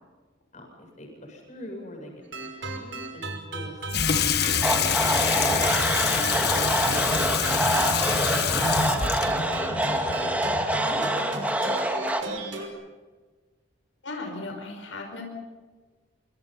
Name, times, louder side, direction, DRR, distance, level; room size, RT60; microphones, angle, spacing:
voice 1, 0.5-4.1 7.6-12.3 12.5-12.7, equal, 40° left, 1 dB, 7.9 m, -45 dB
sound 1, 2.2-12.7, right 3 dB, 80° right, 5.5 m, -35 dB
Water tap faucet / Sink (filling or washing), 3.9-10.9, left 7 dB, 55° left, 1.4 m, -26 dB
sound 2, 4.6-12.2, right 1 dB, 10° right, 2.3 m, -26 dB
voice 2, 4.9-5.5 14.0-15.2, left 2 dB, 85° left, 3 dB, 5.4 m, -37 dB
26.5 x 25.5 x 5.7 m, 1.4 s
head